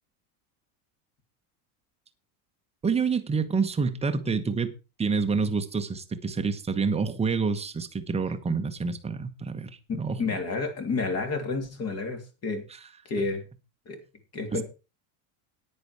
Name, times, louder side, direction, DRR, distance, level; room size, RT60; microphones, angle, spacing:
voice 1, 2.8-4.7 5.0-10.2 14.5-14.6, right 5 dB, 15° right, 1.1 m, -27 dB
voice 2, 9.9-12.6 13.1-13.4 13.9-14.0 14.3-14.6, left 3 dB, 30° left, 2.8 m, -30 dB
10.0 x 9.9 x 4.8 m
supercardioid pair, 140°, 47 cm